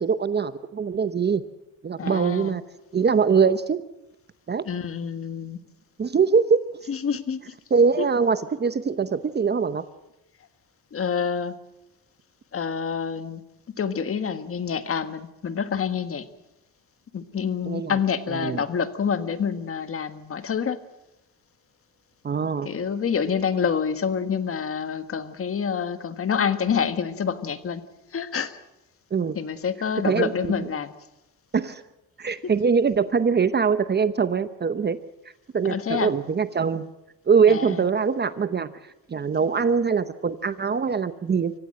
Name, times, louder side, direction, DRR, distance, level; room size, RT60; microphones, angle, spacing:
voice 1, 0.0-1.4 1.8-2.6 2.9-3.8 4.5-4.6 6.0-6.9 7.7-9.9 17.6-18.0 18.3-18.6 22.2-22.7 29.1-29.4 30.0-30.7 31.5-31.8 32.2-35.0 35.5-36.9 37.3-38.7 39.1-41.5, right 5 dB, 30° right, 12 dB, 0.9 m, -23 dB
voice 2, 2.0-2.6 4.7-5.6 6.9-7.4 8.0-8.1 10.9-11.5 12.5-13.4 13.8-16.2 17.1-20.8 22.6-27.8 28.1-28.6 29.3-30.9 32.4-32.5 35.7-36.1 37.5-37.8, left 7 dB, 40° left, 10 dB, 1.5 m, -27 dB
25.0 x 15.5 x 7.7 m, 0.93 s
cardioid pair, 105°, 33 cm